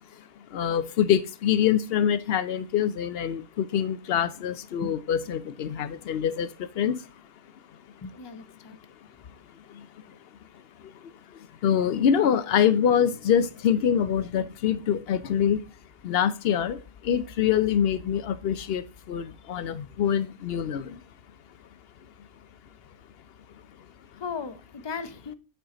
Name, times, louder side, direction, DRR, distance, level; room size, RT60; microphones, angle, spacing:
voice 1, 0.5-6.5 6.8-7.0 11.6-15.6 16.0-16.8 17.1-18.8 19.1-20.8, left 9 dB, 65° left, 0.7 m, -24 dB
voice 2, 8.0-8.8 24.1-25.3, left 5 dB, 30° left, 0.5 m, -36 dB
9.1 x 4.6 x 3.7 m
omnidirectional pair, 1.2 m